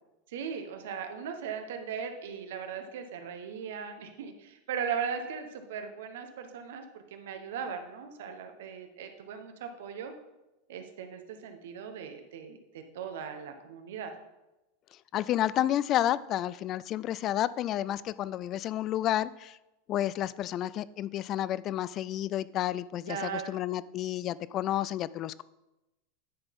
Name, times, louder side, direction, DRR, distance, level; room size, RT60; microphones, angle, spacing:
voice 1, 0.3-10.1 10.7-14.1 23.1-23.5, right 7 dB, 80° right, 6 dB, 1.1 m, -38 dB
voice 2, 15.1-19.6 19.9-25.4, left 12 dB, 40° left, 19 dB, 0.3 m, -30 dB
10.0 x 4.1 x 5.3 m, 0.98 s
supercardioid pair, 120°, 0 cm